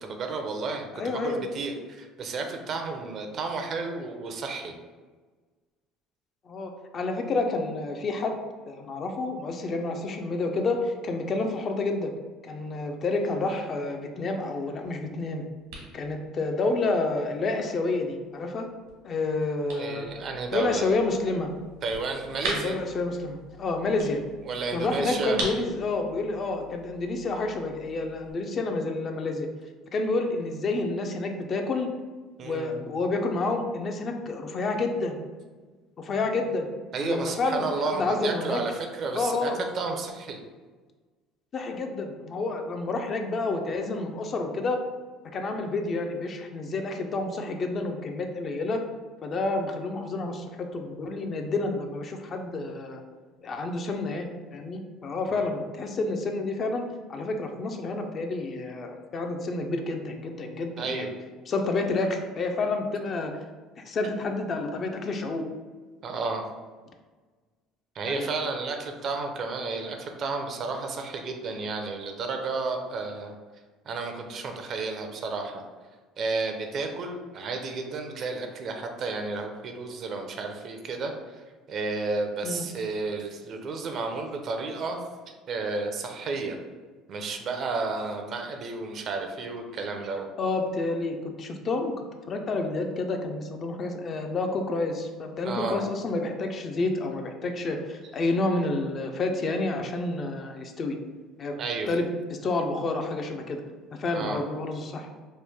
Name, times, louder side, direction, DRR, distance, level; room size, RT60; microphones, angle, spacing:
voice 1, 0.0-4.7 19.8-20.9 21.8-22.8 24.4-25.4 32.4-32.8 36.9-40.4 55.3-55.5 60.8-61.1 66.0-66.4 68.0-73.3 73.9-75.6 76.2-81.4 81.7-85.0 85.5-86.6 87.1-90.3 95.4-95.8 101.6-101.9 104.1-104.4, right 3 dB, 50° right, 4 dB, 0.4 m, -32 dB
voice 2, 0.9-1.4 6.5-8.4 8.7-12.2 12.4-15.5 15.9-18.7 19.0-20.1 20.5-21.5 22.4-24.2 24.7-29.5 29.9-31.9 32.4-35.2 36.0-36.7 37.0-38.6 39.1-39.6 41.5-44.8 45.3-48.8 49.2-53.0 53.4-56.8 57.1-61.1 61.5-63.4 63.9-65.5 68.1-68.3 82.4-82.7 90.4-91.9 92.3-101.0 101.4-101.6 101.9-103.6 104.0-105.1, left 3 dB, 45° left, 5 dB, 0.4 m, -29 dB
sound 1, 14.8-28.3, right 1 dB, 85° right, 1.2 m, -42 dB
3.1 x 2.1 x 3.4 m, 1.4 s
supercardioid pair, 90°, 0 cm